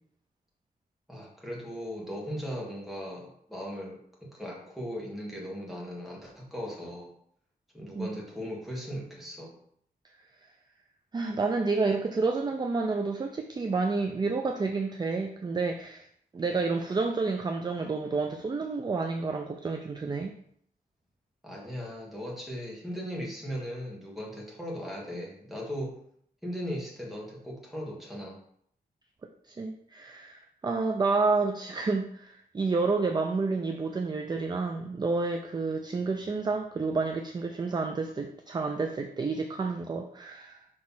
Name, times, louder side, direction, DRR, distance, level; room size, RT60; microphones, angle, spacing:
voice 1, 1.1-4.0 4.3-7.1 7.7-9.6 21.4-26.0 26.4-28.4, equal, ahead, -3 dB, 1.6 m, -38 dB
voice 2, 11.1-16.1 16.3-20.3 29.5-40.6, right 4 dB, 25° right, 3 dB, 0.4 m, -29 dB
6.1 x 3.2 x 5.6 m, 0.66 s
wide cardioid pair, 165°, 16 cm